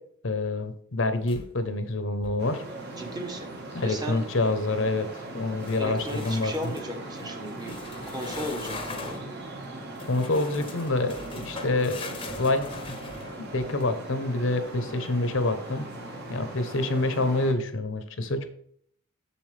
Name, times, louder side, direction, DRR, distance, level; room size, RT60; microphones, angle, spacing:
voice 1, 0.2-2.6 3.7-5.1 5.3-6.5 10.1-12.0 12.4-13.0 13.5-15.9 16.3-18.5, left 2 dB, 60° left, 10 dB, 0.8 m, -27 dB
sound 1, 1.3-1.8 2.1-2.5 5.6-6.9 7.6-9.3 10.0-13.8, left 3 dB, 25° left, 0.8 m, -40 dB
Traffic noise roadway noise, 2.4-17.5, right 2 dB, 50° right, 1.5 m, -40 dB
voice 2, 3.0-3.5 3.8-4.2 5.7-7.8 8.1-9.4, equal, 20° right, 3 dB, 1.0 m, -35 dB
7.1 x 7.0 x 3.3 m, 0.64 s
head